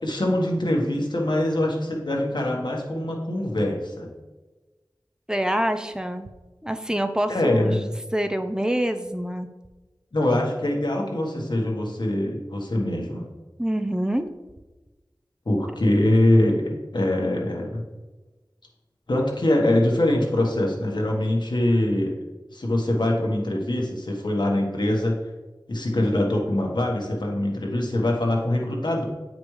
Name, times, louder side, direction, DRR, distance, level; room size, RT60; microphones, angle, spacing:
voice 1, 0.0-4.1 7.3-7.8 10.1-13.3 15.4-17.8 19.1-22.2 22.5-25.2 25.7-29.0, left 1 dB, 70° left, 0 dB, 1.4 m, -23 dB
voice 2, 5.3-6.3 6.6-7.9 8.1-9.5 13.6-14.3, right 1 dB, 10° right, 8 dB, 0.5 m, -26 dB
8.4 x 5.1 x 3.2 m, 1.2 s
wide cardioid pair, 55°, 8 cm